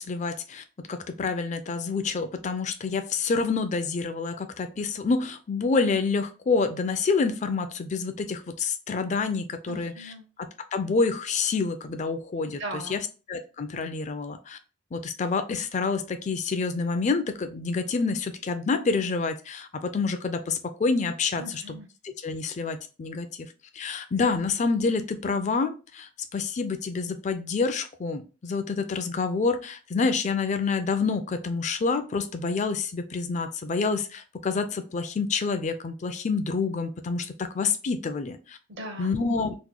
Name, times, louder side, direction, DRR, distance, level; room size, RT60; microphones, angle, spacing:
voice 1, 0.0-9.9 10.7-12.6 12.9-13.0 13.3-14.6 14.9-21.4 22.0-23.3 23.7-38.6 39.0-39.6, left 4 dB, 40° left, 9 dB, 0.4 m, -27 dB
voice 2, 9.7-10.3 12.4-13.1 21.4-21.9 38.7-39.2, right 1 dB, 65° right, 5 dB, 0.7 m, -39 dB
3.0 x 2.1 x 3.6 m, 0.33 s
head